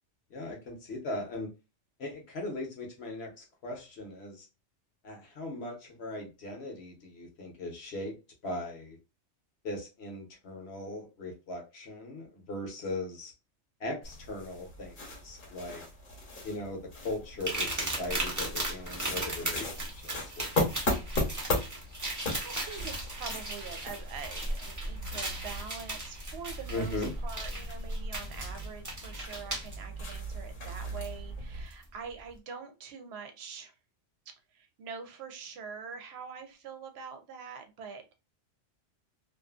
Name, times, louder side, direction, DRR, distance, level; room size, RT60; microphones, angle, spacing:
voice 1, 0.3-1.5 2.0-4.5 5.0-8.1 8.4-9.0 9.6-13.3 13.8-15.8 16.4-20.8 26.7-27.1, left 2 dB, 65° left, 1 dB, 1.1 m, -39 dB
sound 1, 14.0-31.7, left 1 dB, 50° left, 0.9 m, -37 dB
sound 2, 17.4-29.8 31.0-31.1 31.7-31.8, right 2 dB, 20° right, 0.6 m, -37 dB
voice 2, 22.4-33.7 34.5-38.0, right 6 dB, 65° right, 6 dB, 0.8 m, -44 dB
2.5 x 2.5 x 2.3 m, 0.28 s
omnidirectional pair, 1.2 m